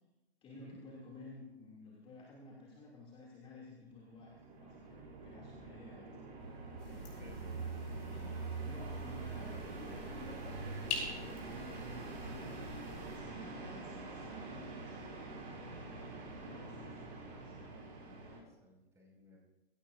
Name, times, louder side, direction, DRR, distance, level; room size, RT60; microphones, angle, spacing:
voice 1, 0.4-6.3 6.9-7.7 8.1-12.7 13.0-15.0 15.4-17.5, left 2 dB, 20° left, -3 dB, 2.4 m, -53 dB
sound 1, 4.0-18.4, right 3 dB, 45° right, 5.9 m, -47 dB
sound 2, 6.4-12.8, right 5 dB, 85° right, 1.3 m, -45 dB
sound 3, 6.8-13.2, left 4 dB, 45° left, 6.0 m, -47 dB
voice 2, 7.2-7.8 9.1-9.3 13.2-13.5 16.7-19.4, right 1 dB, 10° right, -2 dB, 5.1 m, -60 dB
22.5 x 16.5 x 2.5 m, 1.0 s
figure-of-eight pair, 115°, 31 cm